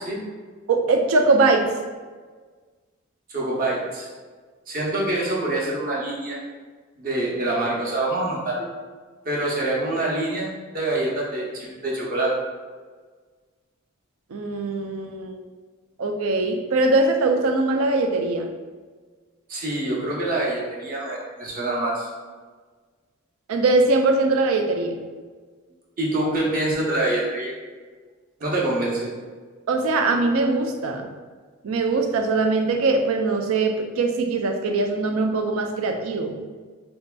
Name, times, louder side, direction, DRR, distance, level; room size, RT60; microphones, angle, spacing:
voice 1, 0.7-1.7 14.3-15.4 16.0-18.5 23.5-25.0 29.7-31.1 31.6-36.3, right 3 dB, 75° right, 5 dB, 0.4 m, -21 dB
voice 2, 3.3-4.1 4.7-6.4 7.0-8.7 9.2-12.3 19.5-22.1 26.0-27.5 28.4-29.2, right 2 dB, 40° right, -4 dB, 0.7 m, -25 dB
4.0 x 2.7 x 2.2 m, 1.5 s
head